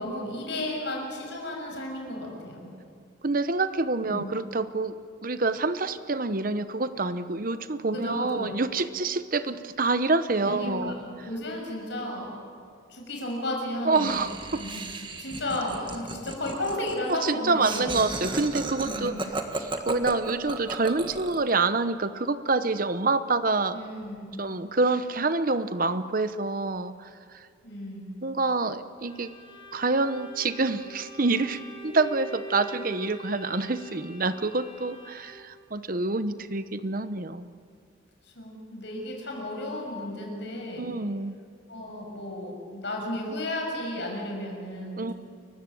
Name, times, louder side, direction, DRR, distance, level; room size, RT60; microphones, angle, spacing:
voice 1, 0.0-2.7 4.1-4.3 7.9-8.6 10.5-12.4 12.9-14.2 14.5-17.9 18.8-19.2 23.7-24.4 27.6-28.1 38.3-40.9 41.7-45.1, left 1 dB, 60° left, 0 dB, 6.6 m, -34 dB
voice 2, 3.2-10.9 13.8-14.6 17.1-19.1 19.6-23.8 24.4-27.1 27.3-27.4 28.2-29.3 29.7-37.5 40.8-41.4 45.0-45.1, right 3 dB, 45° right, 12 dB, 0.9 m, -27 dB
Laughter, 13.9-21.5, right 2 dB, 25° right, 1.6 m, -35 dB
Bowed string instrument, 29.0-35.6, right 1 dB, 25° left, 4.1 m, -44 dB
30.0 x 16.0 x 7.7 m, 2.2 s
head